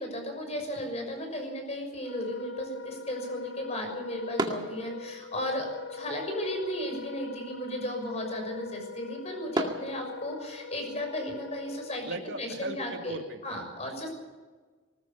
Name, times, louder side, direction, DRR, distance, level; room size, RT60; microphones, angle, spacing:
voice 1, 0.0-12.1 12.4-13.2 13.4-14.1, left 1 dB, 35° left, 4 dB, 6.3 m, -35 dB
sound 1, 0.6-10.7, right 1 dB, 25° right, 2.2 m, -41 dB
Wind instrument woodwind instrument, 2.0-12.1, left 4 dB, 80° left, 0.9 m, -42 dB
voice 2, 12.0-13.4, right 2 dB, 70° right, 5 dB, 2.3 m, -37 dB
20.0 x 20.0 x 7.0 m, 1.4 s
head